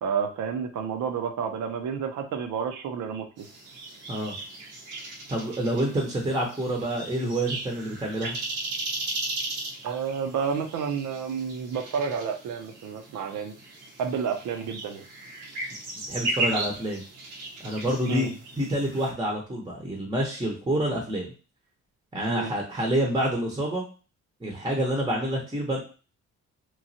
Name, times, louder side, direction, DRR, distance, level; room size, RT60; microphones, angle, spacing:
voice 1, 0.0-3.5 9.8-13.5 14.0-15.0 18.1-18.3 22.3-22.5, right 6 dB, 75° right, 5 dB, 0.7 m, -30 dB
sound 1, 3.4-19.1, right 2 dB, 90° right, 1.1 m, -36 dB
voice 2, 5.3-8.4 16.1-17.0 17.6-21.3 22.1-23.8 24.4-25.8, right 1 dB, 15° right, -1 dB, 0.8 m, -28 dB
3.0 x 2.3 x 2.7 m, 0.36 s
cardioid pair, 90°, 30 cm